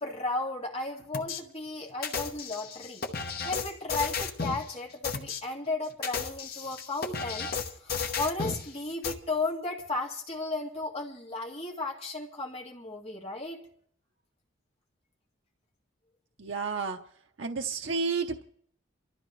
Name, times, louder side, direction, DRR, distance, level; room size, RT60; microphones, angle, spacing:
voice 1, 0.0-3.1 3.4-7.5 7.8-13.6, left 2 dB, 30° left, 0 dB, 2.0 m, -34 dB
sound 1, 1.1-1.4 2.0-4.6 5.0-5.4 5.9-8.6 9.0-9.1, left 5 dB, 50° left, 1.1 m, -33 dB
voice 2, 16.4-17.0 17.4-18.4, right 4 dB, 70° right, 3 dB, 0.8 m, -31 dB
28.5 x 13.0 x 3.2 m, 0.65 s
head